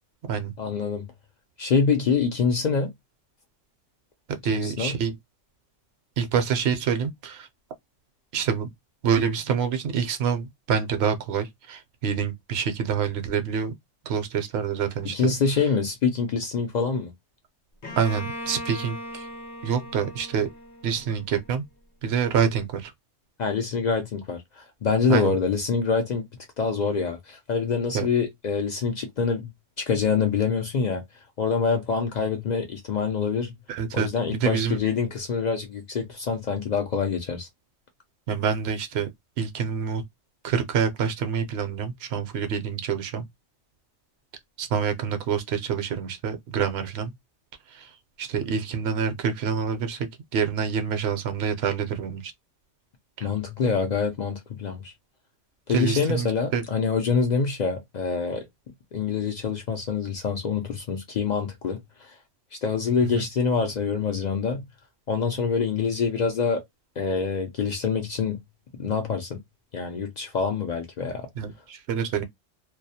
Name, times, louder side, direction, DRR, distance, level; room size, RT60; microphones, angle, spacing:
voice 1, 0.6-1.0 1.6-2.9 4.5-5.0 15.1-17.1 23.4-26.2 26.6-29.5 29.8-31.0 31.4-33.5 33.9-37.5 53.2-54.9 55.7-58.5 58.9-62.1 62.6-64.6 65.1-66.6 67.0-68.4 68.8-69.4 69.7-71.2, left 5 dB, 70° left, 0.4 m, -25 dB
voice 2, 4.4-5.2 6.2-7.5 8.3-8.7 9.0-13.7 14.0-15.3 18.0-19.3 19.6-20.5 20.8-21.6 22.0-22.9 25.1-25.3 27.9-28.1 33.7-34.8 38.3-39.1 39.4-40.0 40.4-43.3 44.6-47.1 47.7-47.9 48.2-52.3 53.2-53.3 55.7-56.6 63.0-63.2 71.4-72.2, right 7 dB, 65° right, 0.7 m, -27 dB
Bowed string instrument, 17.8-21.6, left 1 dB, 50° left, 0.8 m, -38 dB
2.3 x 2.0 x 2.7 m
omnidirectional pair, 1.2 m